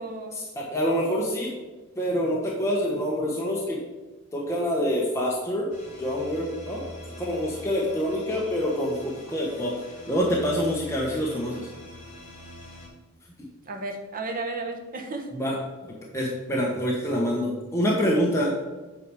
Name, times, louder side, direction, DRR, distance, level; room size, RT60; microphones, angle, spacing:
voice 1, 0.0-0.4 13.7-15.4, right 3 dB, 40° right, 3 dB, 1.2 m, -33 dB
voice 2, 0.6-1.5 2.0-3.8 4.3-5.7 6.0-6.9 7.2-9.7 10.1-11.7 13.4-13.5 15.3-15.6 15.8-18.5, equal, 15° left, -4 dB, 1.1 m, -26 dB
sound 1, 5.7-12.9, left 1 dB, 35° left, 2.7 m, -44 dB
8.5 x 4.8 x 4.8 m, 1.2 s
head